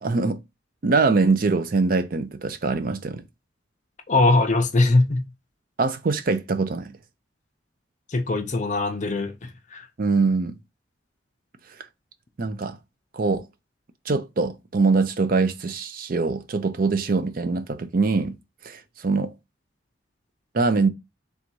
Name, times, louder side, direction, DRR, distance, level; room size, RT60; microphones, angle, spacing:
voice 1, 0.0-0.4 0.8-3.2 5.8-6.9 10.0-10.6 12.4-12.8 13.1-13.4 14.1-18.4 18.6-19.3 20.5-20.9, right 4 dB, 50° right, 0.5 m, -23 dB
voice 2, 4.1-5.2 8.1-9.8, left 2 dB, 40° left, 0.6 m, -21 dB
3.5 x 2.6 x 4.4 m
head